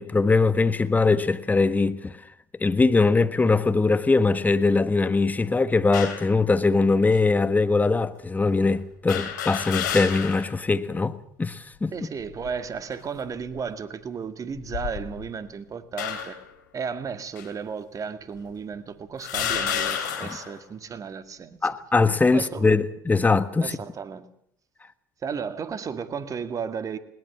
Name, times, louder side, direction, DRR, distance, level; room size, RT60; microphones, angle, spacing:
voice 1, 0.0-2.1 2.6-11.9 21.6-23.7, left 3 dB, 15° left, 1.4 m, -21 dB
sound 1, 5.9-6.3 7.1-7.2 9.1-10.5 11.0-11.1 12.2-12.7 13.3-13.6 14.5-15.4 16.0-16.5 17.4-17.5 18.4-18.5 19.2-20.5, left 8 dB, 80° left, 3.0 m, -30 dB
voice 2, 11.9-16.4 16.7-21.6 22.3-22.8 23.6-24.3 25.2-27.0, right 6 dB, 35° right, 2.1 m, -34 dB
20.5 x 19.0 x 7.2 m
hypercardioid pair, 75°, 10 cm